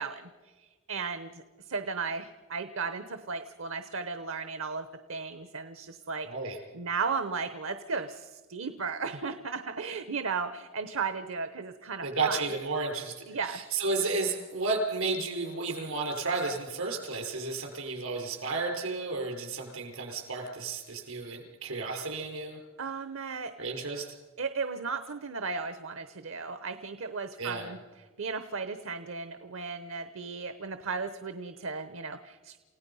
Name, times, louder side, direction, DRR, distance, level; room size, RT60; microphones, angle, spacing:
voice 1, 0.0-12.4 13.3-13.6 22.8-23.5 24.4-32.6, right 5 dB, 65° right, 10 dB, 0.9 m, -35 dB
voice 2, 6.3-6.6 12.0-22.6 23.6-24.1 27.4-27.7, right 3 dB, 85° right, 2 dB, 5.2 m, -32 dB
29.0 x 17.0 x 5.6 m, 1.3 s
head